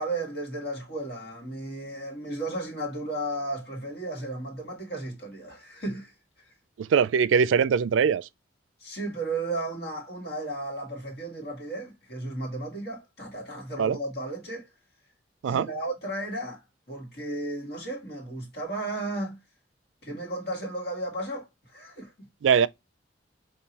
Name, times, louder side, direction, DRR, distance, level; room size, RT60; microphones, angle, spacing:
voice 1, 0.0-6.1 6.4-6.5 8.8-14.7 15.5-19.4 20.0-22.3, right 2 dB, 55° left, 1.6 m, -34 dB
voice 2, 6.8-8.3 13.8-14.0 15.4-15.7 22.4-22.7, right 6 dB, 90° right, 0.3 m, -22 dB
5.4 x 2.6 x 2.8 m
head